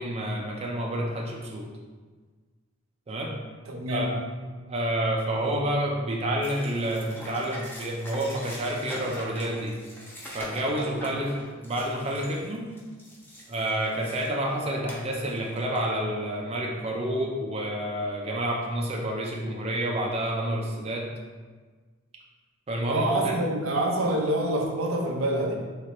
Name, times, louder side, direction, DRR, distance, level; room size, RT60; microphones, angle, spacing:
voice 1, 0.0-1.7 3.1-3.4 3.9-4.2 4.7-9.7 10.3-12.7 13.5-21.1 22.7-23.3, right 1 dB, 30° right, -2 dB, 0.5 m, -29 dB
voice 2, 3.7-4.2 22.9-25.6, right 1 dB, 85° right, 1 dB, 0.6 m, -26 dB
sound 1, 6.4-14.4 14.9-15.9, equal, 10° left, 0.7 m, -43 dB
4.5 x 3.3 x 3.0 m, 1.4 s
head